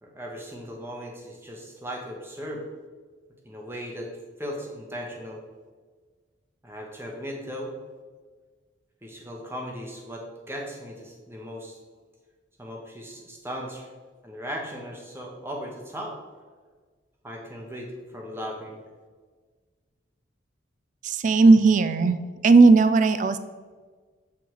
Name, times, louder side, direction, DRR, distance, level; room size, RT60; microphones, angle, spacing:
voice 1, 0.0-2.6 3.4-4.1 4.4-5.4 6.6-7.7 9.0-11.7 12.6-13.9 14.2-16.2 17.2-18.8, equal, 10° right, -1 dB, 1.0 m, -37 dB
voice 2, 21.0-22.2 22.4-23.4, right 3 dB, 40° right, 11 dB, 0.3 m, -16 dB
7.7 x 3.6 x 4.6 m, 1.4 s
head